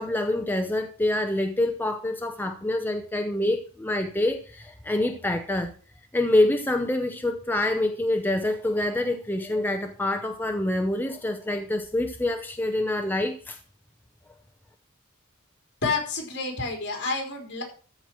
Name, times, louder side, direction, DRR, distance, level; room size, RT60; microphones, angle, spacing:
voice 1, 0.0-5.7 6.1-13.6, left 1 dB, 10° left, 5 dB, 0.7 m, -26 dB
voice 2, 15.8-17.6, left 3 dB, 55° left, 1 dB, 3.8 m, -29 dB
13.5 x 4.6 x 6.1 m, 0.40 s
head